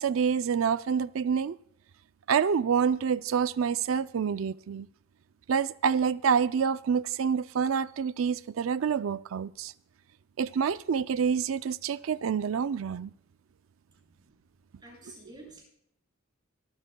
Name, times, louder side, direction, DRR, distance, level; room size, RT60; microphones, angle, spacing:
voice 1, 0.0-1.6 2.3-4.9 5.5-9.7 10.4-13.1, right 6 dB, 85° right, 0.4 m, -27 dB
voice 2, 14.8-15.6, right 2 dB, 20° right, 6.5 m, -49 dB
24.5 x 13.5 x 2.2 m
head